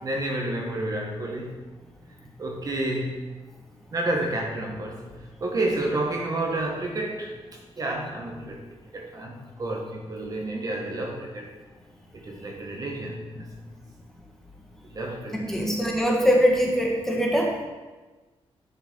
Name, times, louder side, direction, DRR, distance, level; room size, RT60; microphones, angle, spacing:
voice 1, 0.0-1.6 2.1-3.2 3.9-5.1 5.4-8.6 8.9-11.5 12.1-13.7 14.9-15.7, right 1 dB, 40° right, 1 dB, 1.2 m, -30 dB
voice 2, 15.3-17.5, equal, 5° left, -1 dB, 1.5 m, -22 dB
11.0 x 6.3 x 3.7 m, 1.2 s
wide cardioid pair, 140°, 10 cm